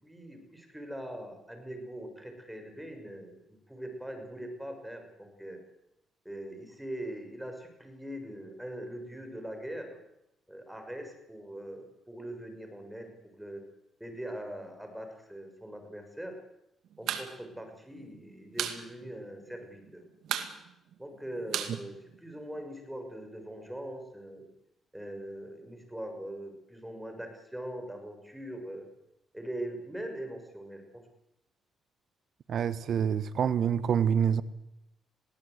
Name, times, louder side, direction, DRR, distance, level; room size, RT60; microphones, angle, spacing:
voice 1, 0.0-5.6 6.2-10.0 10.5-13.6 14.0-16.4 17.0-20.0 21.0-24.5 24.9-28.9 29.3-31.0, right 1 dB, 5° right, 5 dB, 6.2 m, -42 dB
sound 1, 16.9-17.3 17.6-17.7 18.0-18.8 19.1-19.2 19.5-19.9 20.2-22.6, right 9 dB, 75° right, 2.3 m, -34 dB
voice 2, 32.5-34.4, right 8 dB, 60° right, 15 dB, 1.3 m, -26 dB
21.0 x 17.5 x 8.2 m, 0.84 s
cardioid pair, 90°, 0 cm